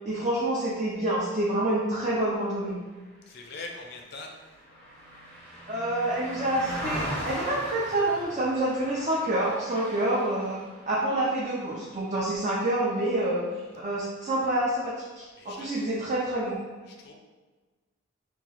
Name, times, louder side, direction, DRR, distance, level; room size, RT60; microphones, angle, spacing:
voice 1, 0.0-2.8 5.7-10.6 10.9-13.4 13.8-16.6, right 1 dB, 35° right, -7 dB, 0.5 m, -27 dB
voice 2, 3.3-4.4 15.4-15.7 16.9-17.1, left 3 dB, 50° left, 2 dB, 0.4 m, -42 dB
Car passing by, 3.3-12.8 13.2-13.4, equal, 5° left, 0.6 m, -39 dB
2.9 x 2.3 x 4.0 m, 1.3 s
head